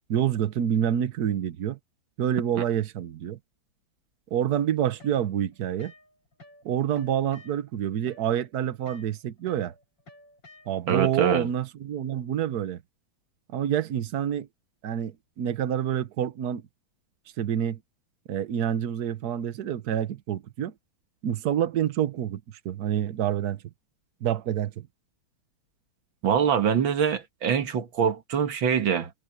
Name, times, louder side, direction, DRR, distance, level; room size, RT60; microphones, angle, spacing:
voice 1, 0.1-1.8 2.2-3.4 4.3-5.9 6.6-9.7 10.7-12.8 13.5-14.5 14.8-16.6 17.4-17.8 18.3-20.7 21.2-23.6 24.2-24.9, right 10 dB, 60° right, 1.4 m, -27 dB
sound 1, 5.0-6.6 6.9-11.0, left 2 dB, 70° left, 7.9 m, -53 dB
voice 2, 10.9-11.5 26.2-29.1, right 7 dB, 80° right, 2.2 m, -24 dB
omnidirectional pair, 2.1 m